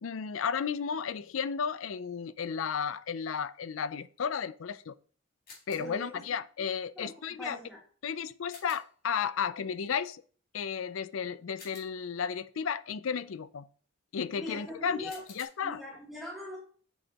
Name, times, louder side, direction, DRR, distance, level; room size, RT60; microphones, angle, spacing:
voice 1, 0.0-5.0 5.7-7.6 8.0-10.2 10.5-13.7 14.1-15.1 15.4-15.8, left 7 dB, 80° left, 0.4 m, -33 dB
sound 1, 5.5-6.1 8.5-9.0 11.6-12.2 15.1-15.4, left 4 dB, 45° left, 3.1 m, -52 dB
voice 2, 5.8-6.2 6.9-7.1 7.4-7.8 14.4-15.2 15.6-16.6, left 1 dB, ahead, 1.6 m, -41 dB
8.0 x 6.3 x 2.9 m
head